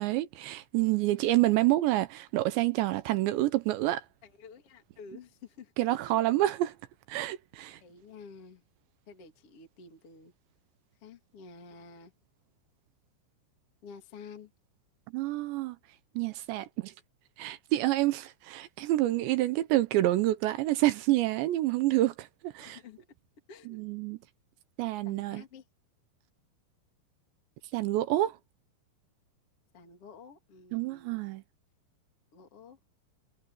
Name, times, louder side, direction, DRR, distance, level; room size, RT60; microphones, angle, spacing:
voice 1, 0.0-4.0 5.8-6.7 7.1-7.8 15.1-15.8 16.2-16.9 17.4-22.8 23.7-24.2 24.8-25.4 27.7-28.4 30.7-31.4, right 16 dB, 80° right, 3.0 m, -28 dB
voice 2, 4.2-5.7 6.0-6.3 7.8-8.6 9.1-10.3 11.0-12.1 13.8-14.5 22.6-23.0 23.5-23.8 25.0-25.6 29.7-31.2 32.3-32.8, left 5 dB, 40° left, 2.8 m, -50 dB
omnidirectional pair, 5.4 m